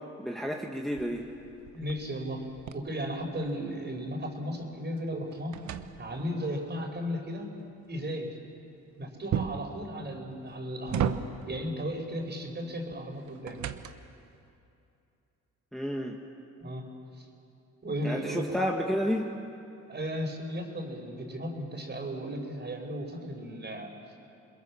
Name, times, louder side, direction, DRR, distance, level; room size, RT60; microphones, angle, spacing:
voice 1, 0.2-1.3 15.7-16.2 18.0-19.3, equal, ahead, 0 dB, 1.8 m, -31 dB
sound 1, 0.9-3.8 4.2-6.5 9.3-9.8 10.4-11.6 12.9-14.2, right 9 dB, 70° right, 1.2 m, -36 dB
voice 2, 1.7-2.4 2.7-5.6 6.0-7.5 7.9-8.3 9.0-11.2 11.5-13.6 16.6-16.9 17.8-18.6 19.9-23.9, equal, 35° right, 3 dB, 4.9 m, -35 dB
29.0 x 22.0 x 7.3 m, 2.7 s
cardioid pair, 90°, 30 cm